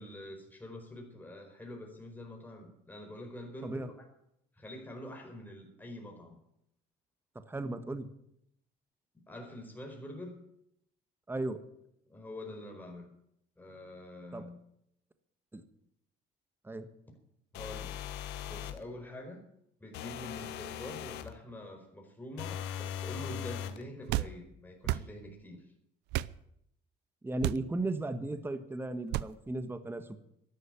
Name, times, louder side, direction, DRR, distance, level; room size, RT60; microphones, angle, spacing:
voice 1, 0.0-4.0 4.5-6.4 9.3-10.4 12.1-13.1 13.6-14.6 17.1-17.2 17.5-18.0 18.5-19.4 19.8-25.7, left 1 dB, 10° left, 2 dB, 4.8 m, -46 dB
voice 2, 7.5-8.1 11.3-11.6 14.3-14.5 15.5-15.6 16.6-16.9 27.2-30.2, right 2 dB, 15° right, 10 dB, 1.5 m, -36 dB
sound 1, 17.5-18.8 19.9-21.3 22.4-23.8, left 9 dB, 90° left, 1.4 m, -40 dB
sound 2, 24.1-24.3 24.8-25.1 26.1-26.4 27.4-27.7 29.1-29.3, right 15 dB, 90° right, 0.6 m, -31 dB
13.0 x 12.0 x 8.9 m, 0.75 s
cardioid pair, 110°, 17 cm